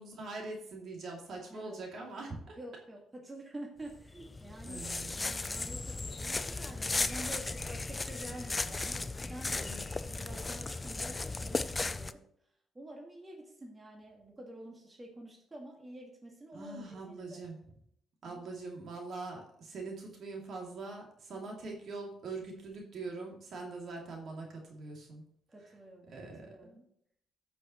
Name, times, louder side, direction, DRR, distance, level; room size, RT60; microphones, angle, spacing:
voice 1, 0.0-2.6 4.6-5.3 9.6-9.8 16.5-17.6 18.2-25.2 26.1-26.5, right 3 dB, 60° right, 0 dB, 2.7 m, -43 dB
voice 2, 1.4-1.8 2.6-4.9 5.2-12.3 12.7-17.4 18.2-18.4 21.3-21.6 25.5-26.8, right 1 dB, 20° right, 0 dB, 1.9 m, -48 dB
sound 1, 3.9-12.1, left 3 dB, 20° left, 0.4 m, -36 dB
14.0 x 6.2 x 3.1 m, 0.70 s
cardioid pair, 90°, 0 cm